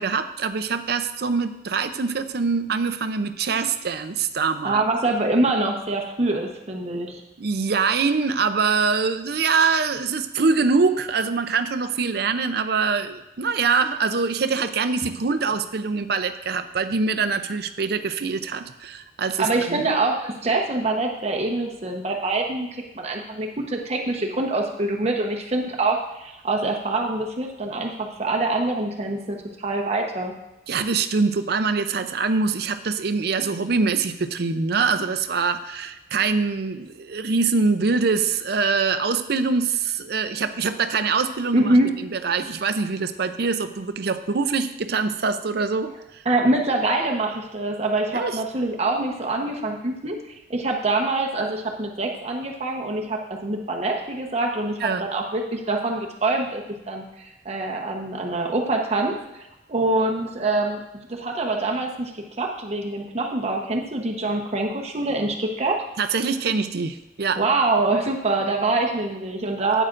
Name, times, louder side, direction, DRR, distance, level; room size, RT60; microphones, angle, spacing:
voice 1, 0.0-4.8 7.4-19.8 30.7-45.9 48.1-48.4 54.8-55.0 66.0-67.4, right 4 dB, 60° right, 9 dB, 0.6 m, -24 dB
voice 2, 4.6-7.2 19.4-22.7 22.9-30.3 41.5-41.9 46.3-50.2 50.5-59.2 59.7-60.8 61.1-65.8 67.4-69.8, right 2 dB, 35° right, 1 dB, 1.0 m, -24 dB
12.0 x 9.0 x 2.6 m, 0.95 s
head